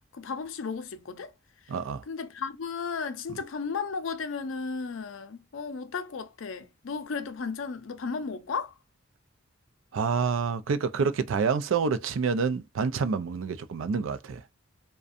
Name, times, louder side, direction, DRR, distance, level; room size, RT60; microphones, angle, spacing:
voice 1, 0.1-1.3 2.1-8.7, left 5 dB, 75° left, 0.5 m, -34 dB
voice 2, 1.7-2.0 9.9-14.4, right 5 dB, 75° right, 0.4 m, -28 dB
2.4 x 2.2 x 2.5 m
head